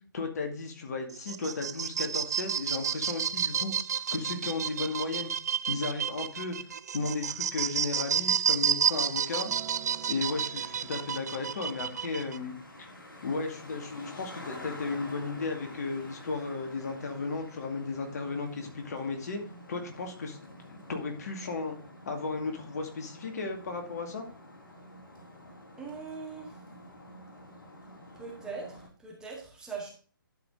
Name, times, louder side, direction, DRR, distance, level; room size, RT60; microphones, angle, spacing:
voice 1, 0.1-3.7 4.1-5.3 5.7-6.6 6.9-9.5 10.1-12.9 13.2-19.4 19.7-21.8 22.1-24.2, left 3 dB, 45° left, 4 dB, 2.2 m, -35 dB
sound 1, 1.1-12.4, right 8 dB, 50° right, 0.5 m, -31 dB
Traffic noise roadway noise, 8.9-28.9, left 1 dB, 65° left, 3.6 m, -49 dB
Acoustic guitar, 9.4-13.7 14.6-14.7, right 9 dB, 30° right, 2.7 m, -50 dB
voice 2, 25.8-26.6 28.1-29.9, right 5 dB, 5° right, -2 dB, 1.8 m, -41 dB
11.5 x 5.2 x 3.8 m, 0.39 s
figure-of-eight pair, 140°, 12 cm